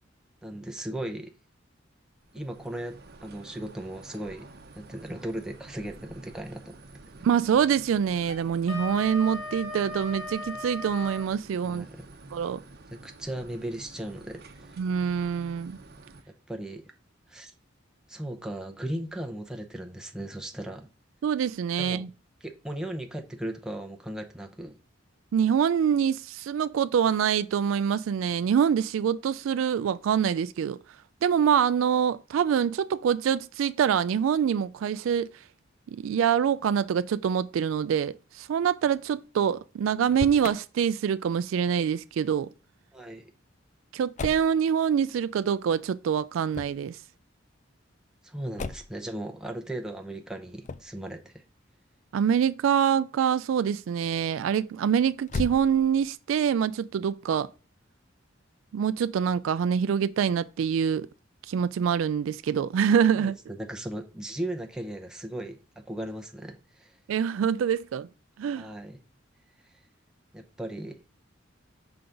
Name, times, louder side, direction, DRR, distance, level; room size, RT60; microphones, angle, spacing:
voice 1, 0.4-1.3 2.3-2.9 3.2-4.5 4.7-6.8 11.6-12.1 13.0-14.8 16.5-16.8 17.3-17.5 18.1-20.9 21.8-22.1 22.4-24.8 42.9-43.3 48.2-51.4 63.2-67.0 68.5-69.0 69.6-69.8 70.3-71.0, right 1 dB, 5° right, 0.7 m, -37 dB
sound 1, 2.2-16.2, right 2 dB, 55° right, 0.8 m, -50 dB
voice 2, 7.2-11.9 12.3-12.6 14.8-15.8 21.2-22.1 25.3-30.8 31.2-35.3 35.9-42.5 43.9-47.0 52.1-57.5 58.7-61.1 61.5-63.3 67.1-68.1 68.4-68.7, right 8 dB, 80° right, 0.3 m, -25 dB
Wind instrument woodwind instrument, 8.2-11.3, left 2 dB, 75° left, 2.3 m, -37 dB
Motor vehicle (road), 39.9-40.6 44.2-44.5 46.5-46.9 48.6-49.0 50.6-51.0 55.2-56.1, left 3 dB, 40° left, 0.4 m, -35 dB
5.7 x 3.9 x 5.1 m
head